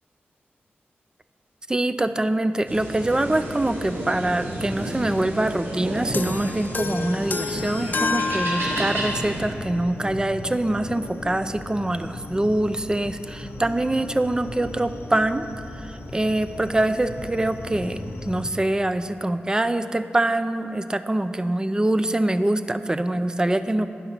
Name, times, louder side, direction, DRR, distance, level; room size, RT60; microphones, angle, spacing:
voice 1, 1.7-15.5 15.8-23.9, right 1 dB, 20° right, 11 dB, 0.4 m, -24 dB
sound 1, 2.7-9.4, right 1 dB, 65° right, 2.0 m, -31 dB
sound 2, 6.1-9.3, left 4 dB, 50° left, 0.3 m, -29 dB
sound 3, 9.0-18.5, left 2 dB, 80° left, 0.8 m, -37 dB
10.5 x 5.6 x 5.8 m, 2.4 s
cardioid pair, 65°, 4 cm